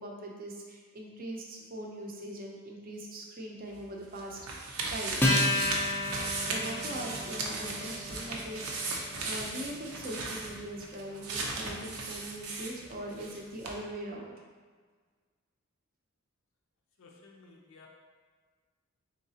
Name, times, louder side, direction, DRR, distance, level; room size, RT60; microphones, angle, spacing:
voice 1, 0.0-5.5 6.4-14.3, right 1 dB, 40° right, -1 dB, 0.5 m, -41 dB
sound 1, 3.7-13.4 13.6-13.7, right 3 dB, 80° right, 0.6 m, -36 dB
Acoustic guitar, 5.2-12.0, left 1 dB, 10° left, 0.5 m, -33 dB
voice 2, 17.0-17.9, left 3 dB, 65° left, 0 dB, 0.4 m, -55 dB
3.9 x 3.5 x 2.8 m, 1.5 s
head